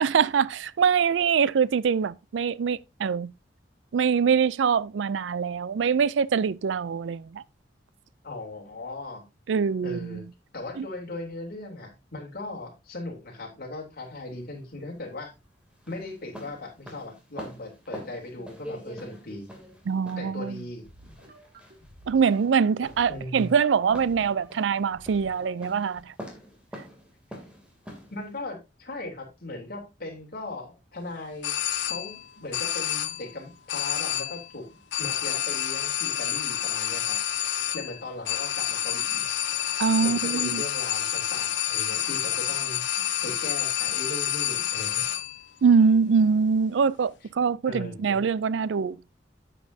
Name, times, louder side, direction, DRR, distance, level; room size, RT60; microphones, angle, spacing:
voice 1, 0.0-3.3 3.9-7.4 9.5-10.2 10.8-10.9 19.9-20.6 22.1-26.1 39.8-40.6 45.6-49.0, right 6 dB, 85° right, 0.4 m, -23 dB
voice 2, 8.2-9.2 9.8-10.3 10.5-15.3 15.9-19.5 20.2-20.9 23.1-23.5 28.1-31.6 31.8-34.7 35.0-39.2 40.0-45.0 47.6-48.2, left 2 dB, 55° left, 3.3 m, -38 dB
sound 1, 14.0-28.4, equal, 5° right, 2.7 m, -45 dB
sound 2, 20.8-26.0, right 1 dB, 55° right, 2.6 m, -52 dB
sound 3, 31.4-32.2 32.5-33.3 33.7-34.5 34.9-45.4, left 11 dB, 85° left, 0.8 m, -29 dB
9.9 x 8.3 x 2.7 m
head